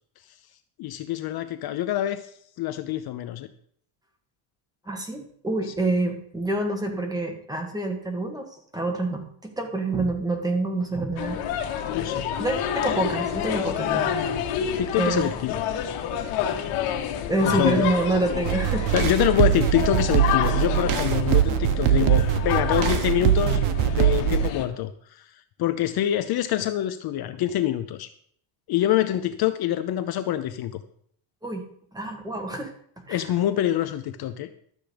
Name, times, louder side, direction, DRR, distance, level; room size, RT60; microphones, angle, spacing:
voice 1, 0.8-3.5 11.9-12.3 14.8-15.6 17.4-17.9 18.9-28.1 28.7-30.8 33.1-34.5, left 12 dB, 50° left, 10 dB, 0.7 m, -26 dB
voice 2, 4.9-11.4 12.4-14.2 15.0-15.3 17.3-18.9 31.4-31.6 31.9-32.7 33.1-33.2, right 2 dB, 10° right, 3 dB, 1.8 m, -27 dB
sound 1, 11.2-24.6, left 9 dB, 80° left, 1.7 m, -29 dB
sound 2, 18.4-24.5, right 11 dB, 85° right, 1.1 m, -22 dB
12.5 x 7.4 x 5.1 m, 0.63 s
cardioid pair, 145°, 49 cm